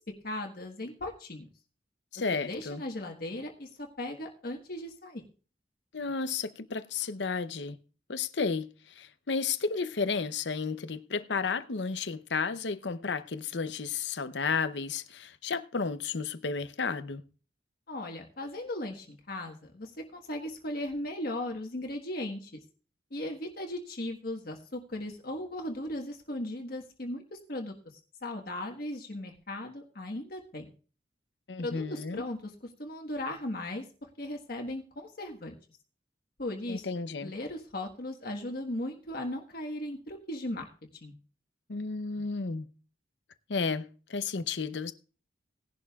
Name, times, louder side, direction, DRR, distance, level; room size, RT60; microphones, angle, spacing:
voice 1, 0.2-1.5 2.3-5.2 17.9-22.5 23.1-27.7 28.2-30.7 31.6-32.5 32.8-33.8 34.2-35.5 36.4-36.9 37.2-40.7 41.0-41.1, left 1 dB, 55° left, 1.4 m, -37 dB
voice 2, 2.1-2.8 5.9-7.8 8.1-17.2 31.5-32.2 36.7-37.3 41.7-42.7 43.5-44.9, left 5 dB, 70° left, 0.7 m, -32 dB
18.0 x 11.0 x 2.4 m
head